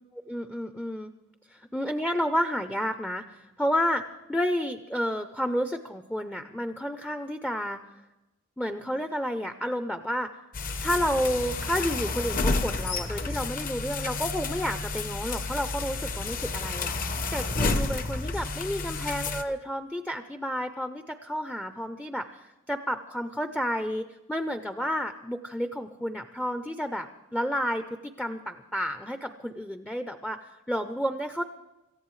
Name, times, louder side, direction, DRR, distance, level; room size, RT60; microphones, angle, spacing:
voice 1, 0.3-1.1 1.5-7.8 8.6-10.3 10.8-31.4, equal, 5° left, 8 dB, 0.5 m, -31 dB
sound 1, 10.5-19.4, left 3 dB, 40° left, 0.7 m, -30 dB
26.5 x 14.0 x 3.2 m, 1.0 s
head